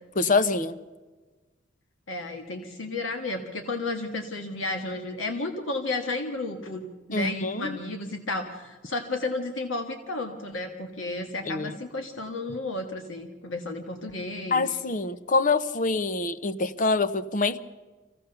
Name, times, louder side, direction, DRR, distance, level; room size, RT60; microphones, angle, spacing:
voice 1, 0.2-0.7 7.1-7.8 11.4-11.7 14.5-17.6, left 3 dB, 40° left, 13 dB, 0.8 m, -25 dB
voice 2, 2.1-14.8, left 2 dB, 80° left, 5 dB, 1.7 m, -32 dB
25.5 x 16.5 x 6.9 m, 1.3 s
head